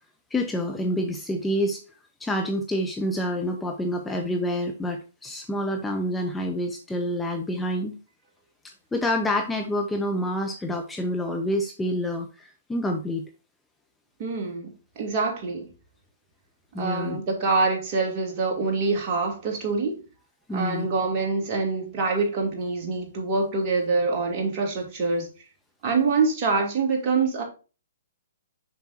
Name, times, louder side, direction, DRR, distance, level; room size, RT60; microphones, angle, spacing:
voice 1, 0.3-1.8 2.2-8.0 8.6-13.3 16.7-17.2 20.5-20.9, left 1 dB, 10° left, 0.8 m, -28 dB
voice 2, 14.2-14.7 15.0-15.7 16.8-20.0 20.5-25.3 25.8-27.4, right 4 dB, 35° right, 2.9 m, -25 dB
6.8 x 6.0 x 2.8 m
figure-of-eight pair, 125°, 0 cm